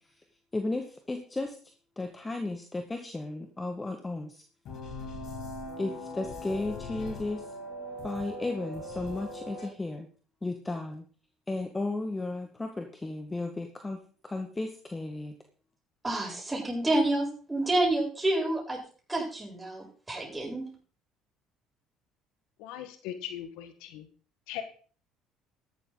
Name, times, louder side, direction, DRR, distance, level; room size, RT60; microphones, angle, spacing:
voice 1, 0.5-1.6 2.0-4.4 5.8-7.4 8.0-10.1 10.4-11.1 11.5-15.4, left 2 dB, 20° left, 5 dB, 1.9 m, -34 dB
sound 1, 4.6-9.7, left 2 dB, 60° left, 6.6 m, -40 dB
voice 2, 16.0-18.8 19.1-20.6, right 1 dB, 15° right, -1 dB, 7.9 m, -28 dB
voice 3, 22.6-24.1 24.5-24.6, left 11 dB, 75° left, 9 dB, 1.6 m, -39 dB
13.0 x 12.0 x 4.1 m, 0.42 s
supercardioid pair, 70°, 0 cm